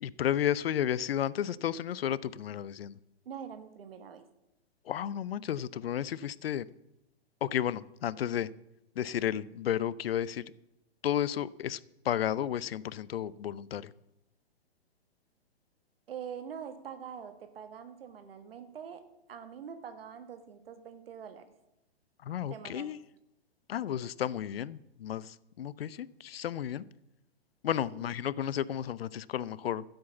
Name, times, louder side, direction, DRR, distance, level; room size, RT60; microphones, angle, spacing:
voice 1, 0.0-3.0 4.9-6.7 7.4-8.5 9.0-10.4 11.0-11.8 12.0-13.9 22.2-23.0 23.7-26.8 27.6-29.8, left 10 dB, 65° left, 20 dB, 0.6 m, -32 dB
voice 2, 3.2-4.2 16.1-21.5 22.5-22.9 27.9-28.1, right 7 dB, 65° right, 9 dB, 1.4 m, -44 dB
12.5 x 7.9 x 7.1 m, 0.89 s
hypercardioid pair, 120°, 32 cm